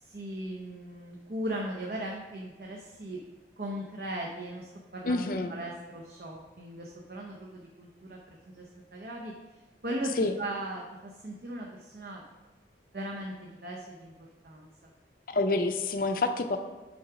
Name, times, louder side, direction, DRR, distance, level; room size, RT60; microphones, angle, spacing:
voice 1, 0.0-3.2 3.6-9.3 9.8-12.2 12.9-14.1 14.4-14.7, right 1 dB, 55° right, -1 dB, 0.7 m, -38 dB
voice 2, 5.0-5.5 10.2-10.3 15.3-16.6, left 2 dB, 50° left, 7 dB, 0.5 m, -27 dB
6.1 x 4.8 x 4.8 m, 1.2 s
head